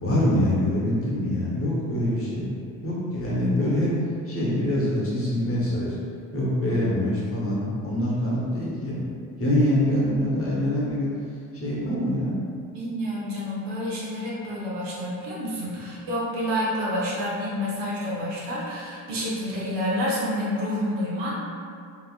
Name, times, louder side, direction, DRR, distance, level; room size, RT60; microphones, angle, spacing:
voice 1, 0.0-2.5 2.8-4.0 4.3-6.0 6.3-9.0 9.4-11.2 11.5-12.4, left 1 dB, 30° left, -7 dB, 1.1 m, -24 dB
voice 2, 12.7-21.3, equal, 60° right, -6 dB, 1.0 m, -29 dB
3.0 x 2.8 x 2.3 m, 2.4 s
hypercardioid pair, 55°, 47 cm